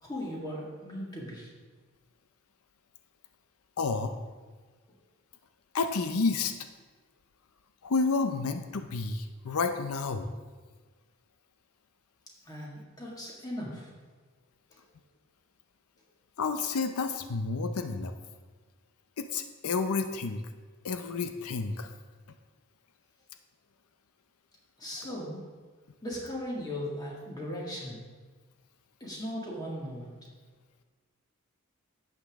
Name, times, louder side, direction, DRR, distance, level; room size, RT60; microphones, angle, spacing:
voice 1, 0.0-1.5 12.4-13.9 24.8-25.5 26.0-28.1 29.0-30.3, equal, 15° left, -3 dB, 1.9 m, -38 dB
voice 2, 3.8-4.1 5.7-6.5 7.8-10.3 16.4-18.1 19.2-20.4 20.8-21.9, left 4 dB, 85° left, 8 dB, 0.6 m, -30 dB
11.5 x 7.9 x 3.6 m, 1.4 s
head